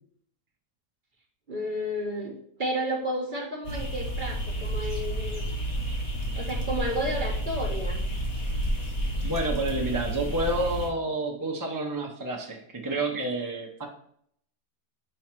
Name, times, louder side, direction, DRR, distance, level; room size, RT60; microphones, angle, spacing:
voice 1, 1.5-5.4 6.3-8.0, equal, 35° right, 1 dB, 1.2 m, -32 dB
sound 1, 3.6-10.9, right 1 dB, 60° left, 1.9 m, -30 dB
voice 2, 9.2-13.9, right 2 dB, 15° right, -1 dB, 0.7 m, -29 dB
5.6 x 4.8 x 4.5 m, 0.67 s
omnidirectional pair, 1.7 m